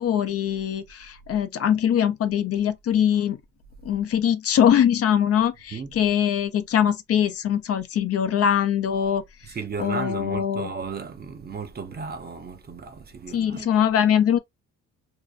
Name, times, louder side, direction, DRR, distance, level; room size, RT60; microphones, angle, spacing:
voice 1, 0.0-3.4 3.8-9.2 9.8-10.7 13.3-14.4, left 9 dB, 50° left, 0.5 m, -22 dB
voice 2, 9.4-13.9, right 5 dB, 30° right, 0.6 m, -35 dB
2.6 x 2.0 x 2.4 m
cardioid pair, 90°, 30 cm